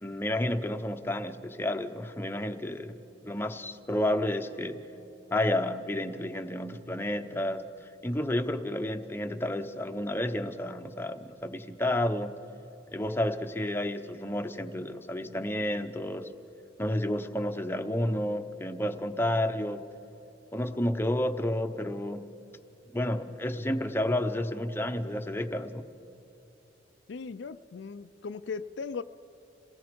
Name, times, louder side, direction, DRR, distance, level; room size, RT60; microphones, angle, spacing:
voice 1, 0.0-4.8 5.3-12.3 12.9-16.3 16.8-19.9 20.5-22.3 22.9-25.9, left 1 dB, 15° left, 7 dB, 0.8 m, -31 dB
voice 2, 27.1-29.0, left 5 dB, 70° left, 12 dB, 0.4 m, -38 dB
27.5 x 18.0 x 5.2 m, 2.9 s
head